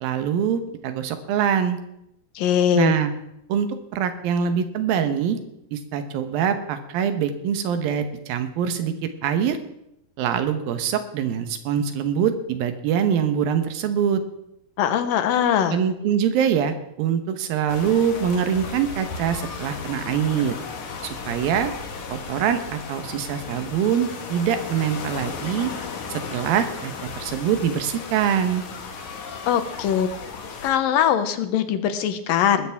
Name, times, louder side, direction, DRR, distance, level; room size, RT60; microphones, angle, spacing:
voice 1, 0.0-1.8 2.8-3.1 3.5-5.4 5.7-9.6 10.2-14.2 15.7-20.6 21.0-21.7 22.1-25.7 26.1-28.6, right 8 dB, 80° right, 8 dB, 2.9 m, -24 dB
voice 2, 2.4-2.9 14.8-15.8 29.5-30.1 30.6-32.7, left 9 dB, 75° left, 10 dB, 2.6 m, -21 dB
sound 1, 17.7-30.7, left 5 dB, 60° left, 2.6 m, -35 dB
20.5 x 13.0 x 3.5 m, 0.80 s
omnidirectional pair, 4.2 m